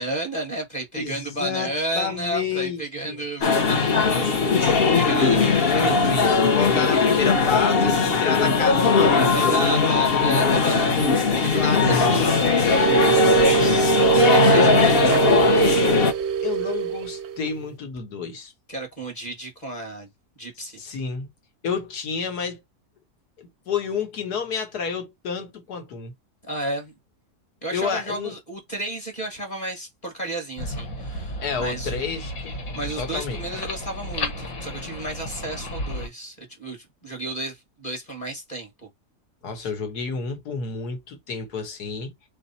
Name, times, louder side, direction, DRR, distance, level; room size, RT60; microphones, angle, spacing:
voice 1, 0.0-6.1 9.3-15.4 18.7-20.1 20.4-20.8 26.4-26.9 27.6-32.0 32.7-38.7 39.6-39.7, right 1 dB, 30° left, 1.5 m, -32 dB
voice 2, 0.9-3.2 5.3-9.3 10.5-10.6 11.3-11.8 16.4-18.5 20.8-21.3 21.6-22.6 23.4-26.1 27.7-28.3 31.4-32.6 33.0-33.4 39.4-42.1, left 6 dB, 80° left, 1.7 m, -30 dB
sound 1, 3.4-16.1, left 4 dB, 45° left, 0.9 m, -19 dB
sound 2, 12.7-17.6, right 9 dB, 60° right, 0.7 m, -22 dB
sound 3, 30.6-36.1, left 1 dB, 65° left, 1.7 m, -33 dB
3.5 x 3.4 x 4.1 m
omnidirectional pair, 1.6 m